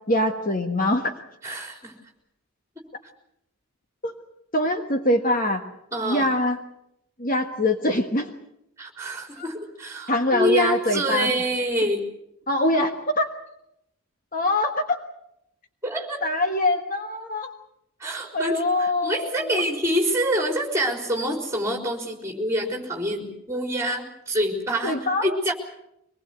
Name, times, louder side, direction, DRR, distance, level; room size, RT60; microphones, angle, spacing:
voice 1, 0.1-1.1 4.0-4.1 4.5-5.6 6.0-6.6 7.2-8.3 9.4-9.5 10.1-11.4 12.5-13.3 14.3-15.0 16.2-17.5 18.3-19.6 24.8-25.4, left 1 dB, 40° left, 5 dB, 1.4 m, -23 dB
voice 2, 1.4-1.9 5.9-6.3 8.8-12.0 15.8-16.2 18.0-25.5, right 1 dB, 15° right, 2 dB, 4.2 m, -26 dB
24.5 x 20.0 x 7.9 m, 0.79 s
head